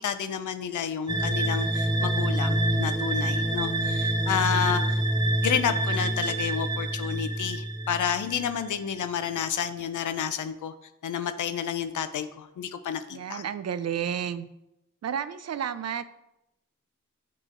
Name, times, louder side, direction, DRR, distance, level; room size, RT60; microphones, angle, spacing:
voice 1, 0.0-5.0 5.4-10.7 11.0-13.4, left 8 dB, 80° left, 10 dB, 0.6 m, -30 dB
sound 1, 1.1-8.6, right 1 dB, 15° right, 0.9 m, -27 dB
voice 2, 13.1-14.5 15.0-16.1, right 8 dB, 60° right, 13 dB, 0.5 m, -31 dB
8.5 x 3.2 x 3.8 m, 0.89 s
cardioid pair, 50°, 30 cm